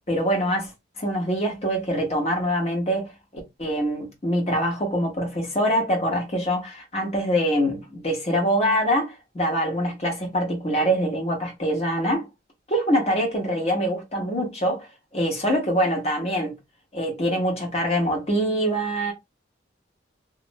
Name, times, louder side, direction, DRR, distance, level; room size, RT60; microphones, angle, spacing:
voice 1, 0.1-0.7 1.0-3.1 3.6-12.3 12.7-14.9 15.1-16.5 16.9-19.1, equal, 35° left, 1.0 m, -24 dB
2.6 x 2.0 x 2.6 m
head